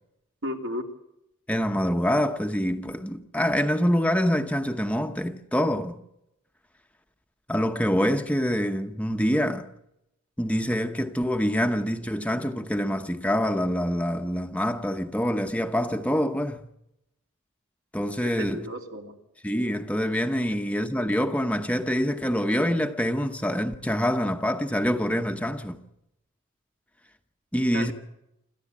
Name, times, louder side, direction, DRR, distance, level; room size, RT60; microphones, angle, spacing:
voice 1, 0.4-0.8 18.2-19.1 27.7-27.9, equal, 65° right, 3.1 m, -33 dB
voice 2, 1.5-6.0 7.5-9.7 10.4-16.7 17.9-18.7 19.4-25.8 27.5-27.9, equal, 5° left, 1.0 m, -25 dB
26.5 x 14.0 x 8.5 m
head